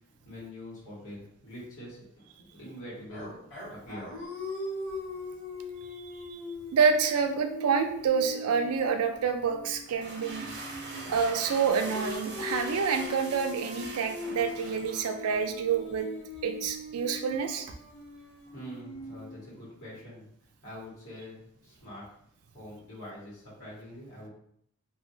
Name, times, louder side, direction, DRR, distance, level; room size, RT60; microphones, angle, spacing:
voice 1, 0.1-3.4 3.6-4.5 18.5-20.3 20.6-22.2 22.5-24.3, equal, 75° left, -8 dB, 1.5 m, -45 dB
sound 1, 3.1-11.2 11.7-19.8, left 2 dB, 55° left, 0.8 m, -41 dB
voice 2, 6.0-6.4 6.7-10.5 11.1-16.1 16.4-17.7, right 6 dB, 90° right, 7 dB, 0.4 m, -28 dB
sound 2, 9.8-15.4, right 2 dB, 50° right, 0.6 m, -43 dB
2.7 x 2.7 x 2.6 m, 0.70 s
head